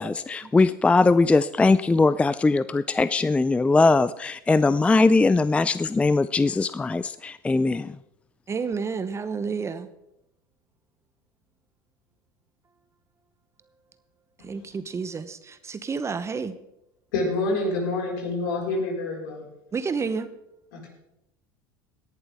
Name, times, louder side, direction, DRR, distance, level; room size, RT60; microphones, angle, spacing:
voice 1, 0.0-7.9, left 3 dB, 10° left, 16 dB, 0.4 m, -20 dB
voice 2, 8.5-9.9 14.4-16.6 19.7-20.3, right 5 dB, 25° right, 12 dB, 0.9 m, -30 dB
voice 3, 17.1-19.4 20.7-20.9, left 2 dB, 70° left, -1 dB, 4.8 m, -27 dB
18.0 x 11.0 x 3.5 m, 0.83 s
hypercardioid pair, 80°, 12 cm